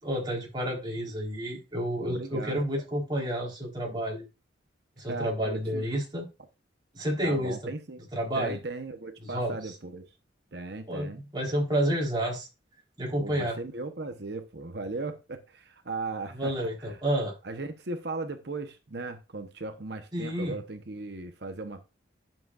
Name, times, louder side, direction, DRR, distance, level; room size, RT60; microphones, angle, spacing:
voice 1, 0.0-4.2 5.0-6.2 6.9-7.6 8.1-8.6 9.3-9.6 10.9-12.5 13.0-13.5 16.3-17.3 20.1-20.6, equal, 25° right, 4.1 m, -30 dB
voice 2, 2.0-2.8 5.1-5.8 7.2-8.0 8.3-10.1 10.5-11.2 13.2-17.0 17.4-21.8, right 3 dB, 60° right, 0.9 m, -37 dB
11.0 x 7.6 x 2.5 m
head